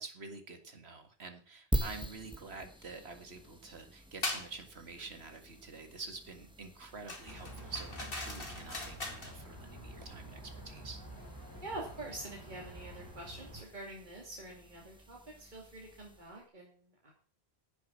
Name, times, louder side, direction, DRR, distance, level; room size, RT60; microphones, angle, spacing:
voice 1, 0.0-11.0, right 4 dB, 80° right, 7 dB, 2.1 m, -47 dB
sound 1, 1.7-16.4, right 1 dB, 5° right, 1.3 m, -45 dB
sound 2, 4.2-4.5 7.1-9.4, left 2 dB, 60° left, 2.5 m, -40 dB
sound 3, 7.3-13.6, right 1 dB, 20° right, 4.0 m, -49 dB
voice 2, 11.6-17.1, right 2 dB, 45° right, -2 dB, 2.9 m, -46 dB
10.5 x 8.0 x 7.4 m, 0.43 s
omnidirectional pair, 1.1 m